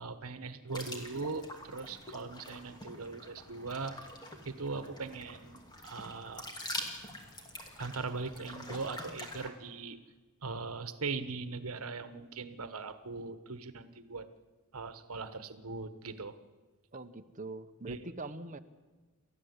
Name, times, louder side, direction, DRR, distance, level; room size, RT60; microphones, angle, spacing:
voice 1, 0.0-4.0 4.5-6.4 7.8-10.0 10.4-14.3 14.7-16.3 17.9-18.0, right 4 dB, 80° right, 11 dB, 1.3 m, -40 dB
sound 1, 0.7-9.5, left 1 dB, 20° left, 2.6 m, -45 dB
voice 2, 16.9-18.6, right 2 dB, 35° right, 7 dB, 1.1 m, -43 dB
29.0 x 14.0 x 8.2 m, 1.3 s
head